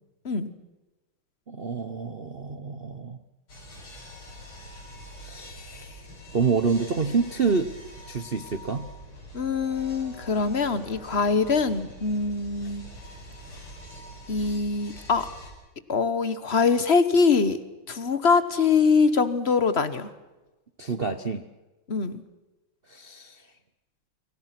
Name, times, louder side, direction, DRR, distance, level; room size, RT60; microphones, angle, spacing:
voice 1, 1.5-3.2 5.2-6.0 6.3-7.7 8.1-8.9 12.6-12.7 20.8-21.4 22.9-23.4, right 5 dB, 45° right, 10 dB, 0.7 m, -28 dB
sound 1, 3.5-15.5, equal, 75° left, 7.7 m, -44 dB
voice 2, 9.3-12.9 14.3-15.3 15.9-17.6 17.9-20.1 21.9-22.2, left 5 dB, 35° left, 13 dB, 1.3 m, -23 dB
29.5 x 24.0 x 6.1 m, 1.1 s
omnidirectional pair, 2.4 m